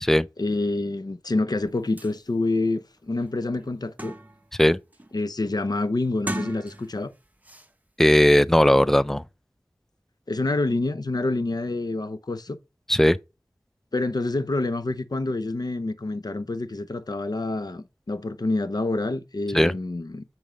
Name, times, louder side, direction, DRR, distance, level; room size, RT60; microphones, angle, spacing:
voice 1, 0.4-4.1 5.1-7.1 10.3-12.6 13.9-20.2, left 2 dB, 65° left, 0.8 m, -27 dB
sound 1, 1.7-1.8 2.0-2.1 2.7-2.8 3.2-4.5 4.9-5.3 6.1-7.1 7.4-7.7, right 1 dB, 20° right, 0.9 m, -36 dB
voice 2, 8.0-9.2 12.9-13.2 19.5-19.7, left 1 dB, 5° left, 0.4 m, -18 dB
7.4 x 4.7 x 5.1 m
wide cardioid pair, 45°, 7 cm